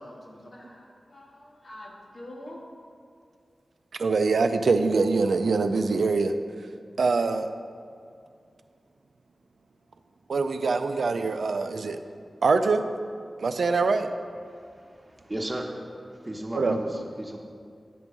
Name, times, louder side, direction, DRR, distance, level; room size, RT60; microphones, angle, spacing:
voice 1, 0.0-2.7 16.1-16.3, left 1 dB, 70° left, -4 dB, 1.7 m, -45 dB
voice 2, 4.0-6.3 7.0-7.5 10.3-12.0 12.4-12.8 13.4-14.1 16.5-17.0, right 4 dB, 90° right, 8 dB, 0.4 m, -24 dB
voice 3, 14.5-15.7 16.1-17.4, right 1 dB, 25° right, 1 dB, 1.0 m, -35 dB
10.0 x 3.7 x 6.0 m, 2.2 s
wide cardioid pair, 60°, 0 cm